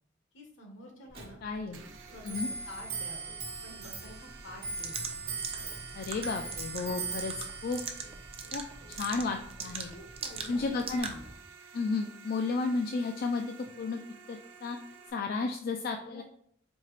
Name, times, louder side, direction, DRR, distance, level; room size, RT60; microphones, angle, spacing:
voice 1, 0.3-1.4 2.1-2.4 2.6-3.3 3.6-5.1 9.9-11.3 16.0-16.2, left 1 dB, 75° left, 1 dB, 1.1 m, -49 dB
Clock, 1.1-11.0, right 4 dB, 55° right, 1.1 m, -41 dB
voice 2, 1.4-1.8 2.2-2.5 5.9-7.8 8.5-8.6 8.9-9.9 10.5-11.1 11.7-13.4 13.8-14.0 14.3-14.8 15.1-16.2, left 4 dB, 50° left, 3 dB, 0.3 m, -32 dB
sound 1, 1.7-15.1, right 6 dB, 80° right, 0.6 m, -52 dB
sound 2, 4.8-11.3, right 5 dB, 30° right, 0.5 m, -42 dB
4.4 x 2.8 x 3.1 m, 0.67 s
head